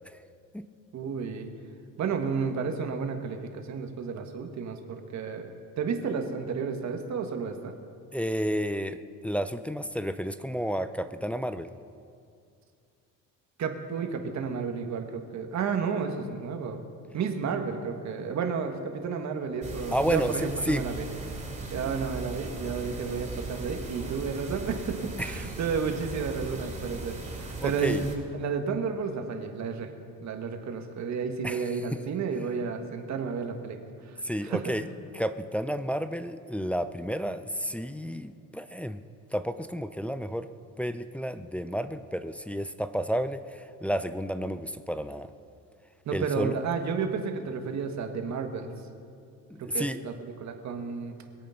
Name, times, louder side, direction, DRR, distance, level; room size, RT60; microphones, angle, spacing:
voice 1, 0.9-1.5 2.0-7.7 13.6-16.8 17.1-21.0 21.7-29.9 30.2-33.8 34.1-34.7 46.0-48.7 49.6-51.1, right 5 dB, 50° right, 5 dB, 1.6 m, -32 dB
voice 2, 8.1-11.7 19.9-20.8 25.2-25.3 27.6-28.0 31.4-32.0 34.2-34.8 35.1-39.0 39.3-40.5 40.8-45.3 46.1-46.6 49.5-50.0, equal, 5° left, 9 dB, 0.4 m, -31 dB
sound 1, 19.6-28.2, right 3 dB, 20° right, 3.0 m, -38 dB
22.5 x 8.4 x 5.8 m, 2.4 s
cardioid pair, 125°, 34 cm